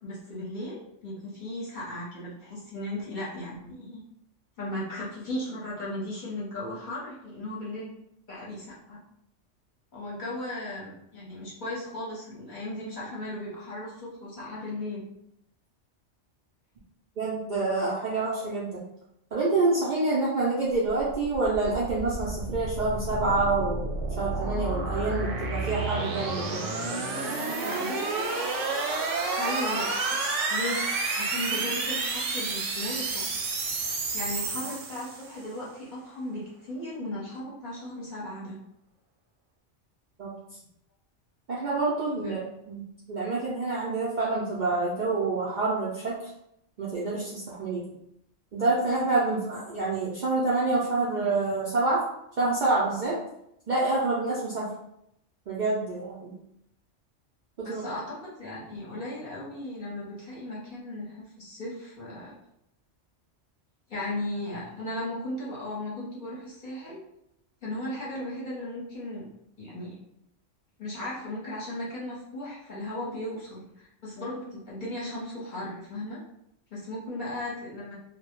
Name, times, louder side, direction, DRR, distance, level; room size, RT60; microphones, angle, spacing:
voice 1, 0.0-4.0 4.6-7.9 8.3-9.0 9.9-15.1 27.2-28.3 29.4-30.2 30.5-30.8 31.1-33.3 34.1-38.6 42.2-42.3 57.6-62.3 63.9-67.0 67.6-69.3 69.6-69.9 70.8-76.2 76.7-77.9, left 1 dB, 50° left, -6 dB, 0.8 m, -36 dB
voice 2, 17.2-18.8 19.3-23.8 24.2-26.7 40.2-40.3 41.5-42.4 42.7-42.8 43.1-46.2 46.8-47.8 48.5-52.0 52.4-53.2 53.7-54.7 55.5-56.3 57.6-57.8, right 3 dB, 60° right, -7 dB, 0.5 m, -27 dB
sound 1, 20.9-35.4, right 3 dB, 85° right, 0.9 m, -30 dB
2.2 x 2.0 x 2.9 m, 0.78 s
omnidirectional pair, 1.2 m